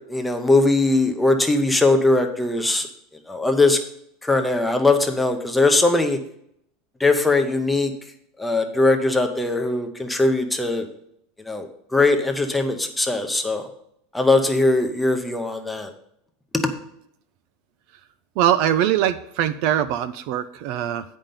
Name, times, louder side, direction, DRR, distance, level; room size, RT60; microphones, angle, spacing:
voice 1, 0.1-2.9 3.3-3.8 4.2-6.2 7.0-7.9 8.4-10.9 11.4-13.6 14.1-15.9 16.5-16.7, left 2 dB, 5° left, 5 dB, 0.7 m, -20 dB
voice 2, 18.4-21.0, right 11 dB, 45° right, 13 dB, 0.4 m, -22 dB
8.9 x 5.3 x 5.6 m, 0.72 s
supercardioid pair, 175°, 0 cm